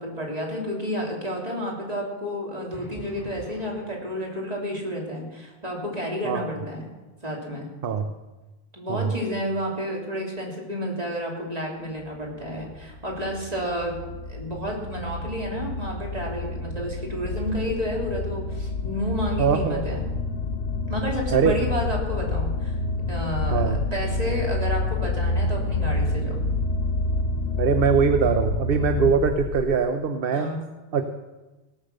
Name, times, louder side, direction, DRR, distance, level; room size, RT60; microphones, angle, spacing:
voice 1, 0.0-6.8 7.2-7.7 8.7-14.0 14.3-20.0 20.9-22.8 23.1-26.4 30.3-30.6, equal, 35° right, -2 dB, 3.2 m, -31 dB
sound 1, 2.7-4.8, equal, 20° left, 1.3 m, -46 dB
sound 2, 12.2-29.7, left 2 dB, 90° left, 1.1 m, -28 dB
voice 2, 19.4-19.8 21.3-21.6 23.5-23.8 27.6-30.5 30.9-31.1, right 6 dB, 60° right, 8 dB, 0.9 m, -22 dB
17.0 x 8.1 x 6.7 m, 1.2 s
omnidirectional pair, 1.1 m